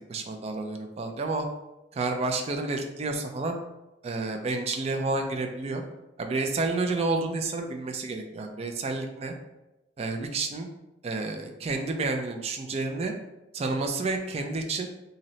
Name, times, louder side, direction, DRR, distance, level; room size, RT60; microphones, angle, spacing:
voice 1, 0.1-1.5 1.9-3.6 4.0-5.8 6.2-9.3 10.0-10.7 11.0-13.1 13.5-14.9, right 3 dB, 35° right, 4 dB, 0.3 m, -30 dB
2.7 x 2.0 x 3.9 m, 0.97 s
head